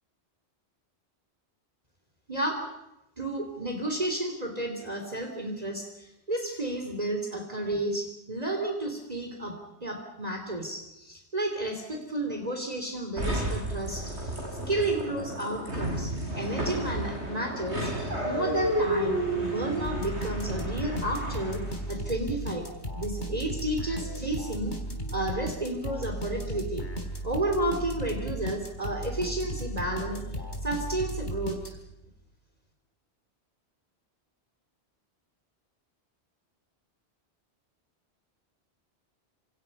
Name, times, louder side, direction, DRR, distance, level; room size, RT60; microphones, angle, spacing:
voice 1, 2.3-2.6 3.2-21.6 21.9-22.7 22.9-24.7 25.1-26.8 27.2-30.2 30.6-31.6, right 1 dB, 35° right, 3 dB, 3.2 m, -32 dB
sound 1, 13.2-21.9, right 1 dB, 80° right, 7.5 m, -31 dB
sound 2, 19.8-32.0, right 1 dB, 45° left, 3.8 m, -35 dB
28.0 x 27.0 x 5.4 m, 0.85 s
omnidirectional pair, 1.1 m